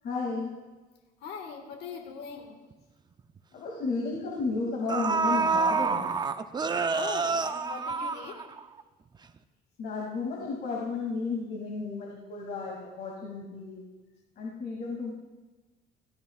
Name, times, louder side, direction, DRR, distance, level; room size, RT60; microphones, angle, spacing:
voice 1, 0.0-0.6 3.5-6.1 9.8-13.8 14.4-15.1, left 4 dB, 65° left, -3 dB, 2.7 m, -33 dB
voice 2, 1.2-2.6 6.9-8.4, left 5 dB, 85° left, 3 dB, 1.8 m, -40 dB
sound 1, 2.7-2.8 3.2-3.4 4.4-4.5 4.9-8.8 9.2-9.3, right 4 dB, 25° right, 0.6 m, -28 dB
17.5 x 15.0 x 2.5 m, 1.2 s
cardioid pair, 110°, 17 cm